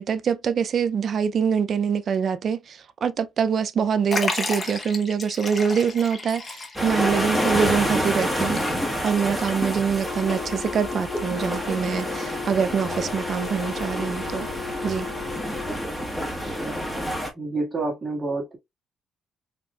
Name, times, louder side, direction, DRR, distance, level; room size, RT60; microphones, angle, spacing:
voice 1, 0.0-8.6 9.0-14.5 14.8-15.1, right 7 dB, 55° right, 0.4 m, -24 dB
Liquid, 4.1-9.2 9.5-9.6 10.5-10.6, left 3 dB, 30° left, 1.0 m, -33 dB
sound 1, 6.8-17.3, equal, 5° left, 1.2 m, -28 dB
Wind instrument woodwind instrument, 10.0-15.8, left 8 dB, 60° left, 0.8 m, -36 dB
voice 2, 16.1-17.1 17.3-18.6, right 2 dB, 30° right, 1.7 m, -30 dB
4.4 x 2.5 x 2.3 m
cardioid pair, 90°, 0 cm